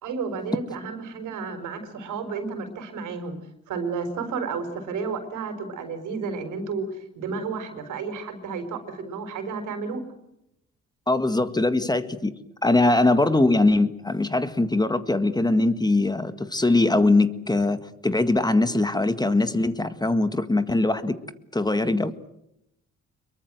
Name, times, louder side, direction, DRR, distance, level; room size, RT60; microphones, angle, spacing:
voice 1, 0.0-3.4 3.7-10.0, right 5 dB, 85° right, 8 dB, 5.1 m, -32 dB
voice 2, 11.1-12.3 12.6-21.2 21.5-22.1, left 2 dB, 15° left, 11 dB, 1.7 m, -21 dB
25.5 x 23.0 x 7.8 m, 0.82 s
cardioid pair, 90°, 30 cm